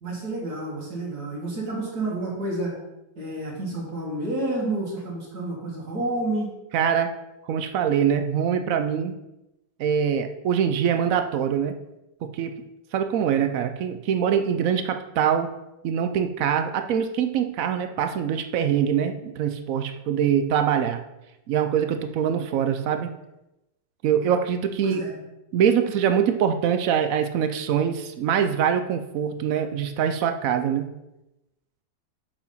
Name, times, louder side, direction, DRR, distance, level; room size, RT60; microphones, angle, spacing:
voice 1, 0.0-2.8 3.2-6.5 24.8-25.1, right 2 dB, 55° right, -4 dB, 2.4 m, -29 dB
voice 2, 6.7-7.1 7.5-9.2 9.8-11.8 12.2-12.5 12.9-15.5 15.8-21.0 21.5-23.1 24.0-25.0 25.5-30.9, right 8 dB, 75° right, 8 dB, 0.7 m, -24 dB
7.2 x 4.8 x 5.4 m, 0.92 s
omnidirectional pair, 2.0 m